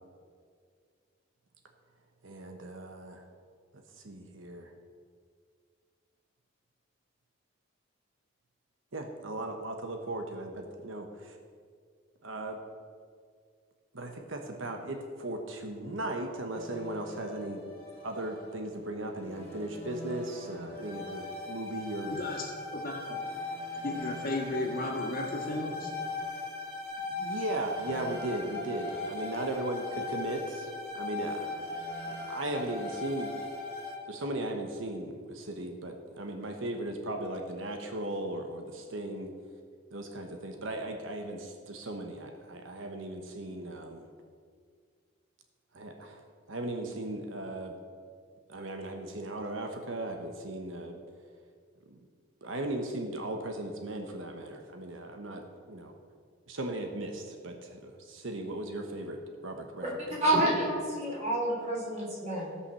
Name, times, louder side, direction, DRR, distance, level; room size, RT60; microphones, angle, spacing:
voice 1, 2.2-3.2 4.0-4.7 8.9-11.4 12.2-12.6 13.9-17.6 18.0-22.2 26.3-26.4 27.1-31.7 32.0-33.3 34.0-39.3 39.9-44.1 45.7-46.2 46.5-47.7 48.5-51.0 51.9-52.0 52.4-55.9 56.5-60.4, right 1 dB, 70° right, 4 dB, 1.0 m, -37 dB
sound 1, 16.5-18.6 19.1-34.0, left 3 dB, 10° left, 2.3 m, -39 dB
voice 2, 22.1-23.2 23.8-25.9, left 1 dB, 45° left, 0 dB, 1.8 m, -35 dB
voice 3, 60.2-62.6, right 1 dB, 35° right, -5 dB, 3.9 m, -28 dB
16.0 x 5.6 x 6.9 m, 2.1 s
head